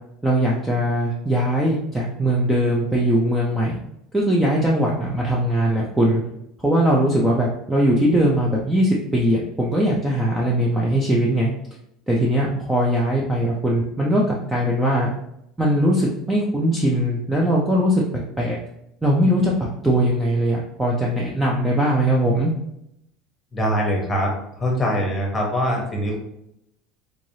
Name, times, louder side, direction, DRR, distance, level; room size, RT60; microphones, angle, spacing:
voice 1, 0.2-3.7 4.1-6.2 6.6-11.5 12.1-15.1 15.6-18.0 18.4-18.6 19.0-19.5 19.8-22.5, equal, 5° right, -3 dB, 0.4 m, -20 dB
voice 2, 23.5-24.3 24.6-26.2, equal, 15° left, -1 dB, 0.9 m, -22 dB
3.6 x 3.2 x 2.6 m, 0.79 s
cardioid pair, 165°, 0 cm